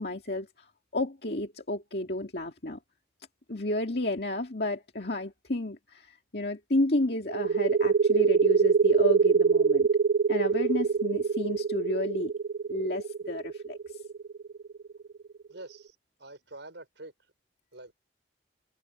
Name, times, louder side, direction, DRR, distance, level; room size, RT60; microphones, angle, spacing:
voice 1, 0.0-2.8 3.5-9.9 10.3-12.3 12.7-13.8, left 1 dB, 55° left, 2.3 m, -31 dB
sound 1, 7.3-14.7, right 5 dB, 50° right, 0.3 m, -24 dB
voice 2, 15.5-17.1 17.7-17.9, right 2 dB, 70° right, 5.1 m, -46 dB
head